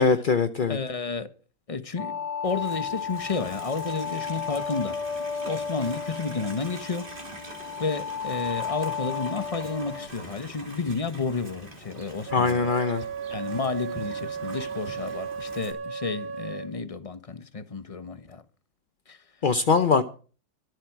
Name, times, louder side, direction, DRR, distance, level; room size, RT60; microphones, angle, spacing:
voice 1, 0.0-0.8 12.3-13.0 19.4-20.0, left 5 dB, 50° left, 0.6 m, -22 dB
voice 2, 0.7-1.3 1.7-7.1 7.8-12.7 13.3-18.4 19.1-19.2, left 4 dB, 25° left, 0.9 m, -31 dB
sound 1, 2.0-10.1, left 6 dB, 70° left, 2.0 m, -33 dB
Livestock farm animals working animals, 2.4-15.7, right 2 dB, 25° right, 3.3 m, -44 dB
Wind instrument woodwind instrument, 12.3-16.8, right 6 dB, 50° right, 2.1 m, -35 dB
24.0 x 8.1 x 4.7 m
omnidirectional pair, 2.0 m